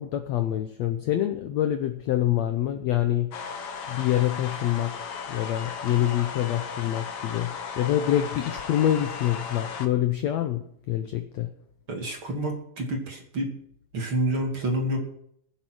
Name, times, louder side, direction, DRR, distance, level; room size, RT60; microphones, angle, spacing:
voice 1, 0.0-3.4 3.9-5.0 5.3-11.5, left 12 dB, 85° left, 8 dB, 1.5 m, -26 dB
sound 1, 3.3-9.9, left 6 dB, 70° left, 1.4 m, -36 dB
voice 2, 11.9-13.5 13.9-15.0, right 1 dB, 40° right, 1 dB, 2.8 m, -28 dB
20.5 x 7.4 x 6.2 m, 0.70 s
omnidirectional pair, 4.1 m